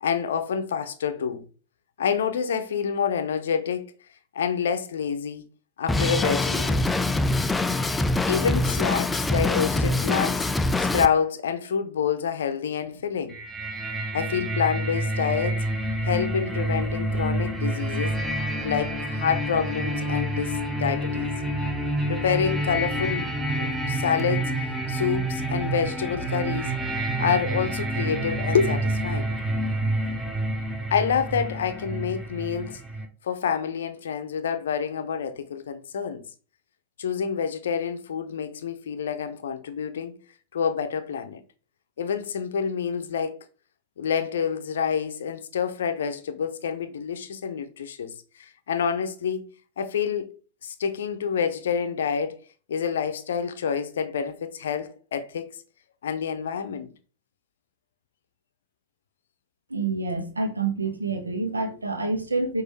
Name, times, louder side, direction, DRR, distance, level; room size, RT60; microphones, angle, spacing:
voice 1, 0.0-1.4 2.0-3.9 4.3-5.4 5.8-6.8 8.3-10.5 10.8-13.4 14.1-15.6 16.0-18.2 18.6-21.3 22.1-24.5 24.9-26.7 27.2-29.3 30.9-32.8 33.2-36.2 37.0-40.1 40.5-41.4 42.0-43.4 44.0-49.4 49.8-50.3 50.6-52.4 52.7-55.5 56.0-56.9, left 7 dB, 65° left, 0.6 m, -27 dB
Drum kit, 5.9-11.1, left 2 dB, 10° left, 0.3 m, -24 dB
sound 1, 13.3-33.1, right 1 dB, 5° right, 0.8 m, -28 dB
voice 2, 59.7-62.6, right 3 dB, 80° right, 0.9 m, -27 dB
6.0 x 2.6 x 3.2 m
figure-of-eight pair, 90°, 0 cm